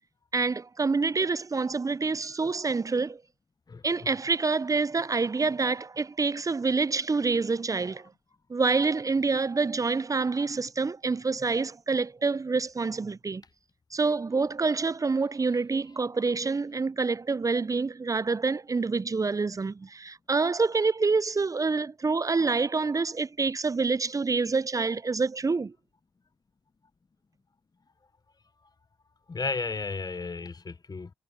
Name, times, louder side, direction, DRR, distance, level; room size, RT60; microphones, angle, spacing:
voice 1, 0.3-3.2 3.8-8.1 8.5-13.4 13.9-25.7, right 4 dB, 25° right, 0.7 m, -27 dB
voice 2, 3.7-4.1 29.3-31.1, left 4 dB, 30° left, 1.3 m, -34 dB
hypercardioid pair, 45°, 14 cm